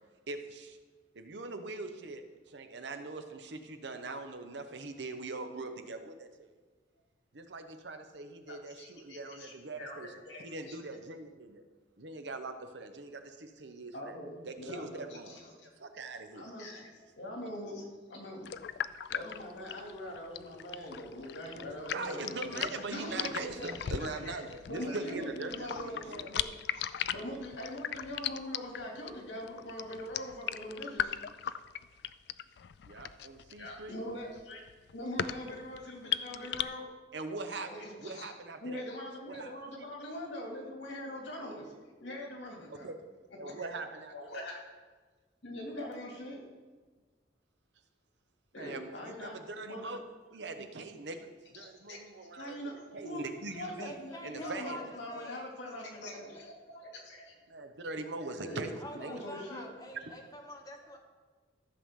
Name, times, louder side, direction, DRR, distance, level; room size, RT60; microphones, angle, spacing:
voice 1, 0.3-0.8 1.1-6.5 7.3-10.1 10.4-11.6 12.0-14.2 14.4-15.4 15.8-16.5 21.9-26.3 32.8-34.0 37.1-38.8 39.3-39.5 42.7-43.0 43.4-44.4 48.6-50.0 50.3-53.9 54.2-54.8 57.5-59.2, right 3 dB, 75° right, 7 dB, 0.9 m, -42 dB
voice 2, 8.5-10.0 10.3-10.7 13.9-15.7 16.3-16.9 17.1-18.5 19.1-24.4 24.7-31.2 33.6-34.6 34.9-36.8 37.6-38.3 38.6-42.9 43.4-43.7 44.1-44.6 45.4-46.4 48.5-49.9 51.5-52.0 52.4-53.2 53.5-57.4 58.4-59.7, left 1 dB, 85° left, -1 dB, 2.5 m, -43 dB
sound 1, 18.5-36.6, left 10 dB, 65° left, 0.3 m, -38 dB
voice 3, 53.8-55.5 56.1-56.5 58.7-61.0, equal, 20° left, 2 dB, 1.1 m, -47 dB
14.0 x 6.9 x 3.7 m, 1.4 s
head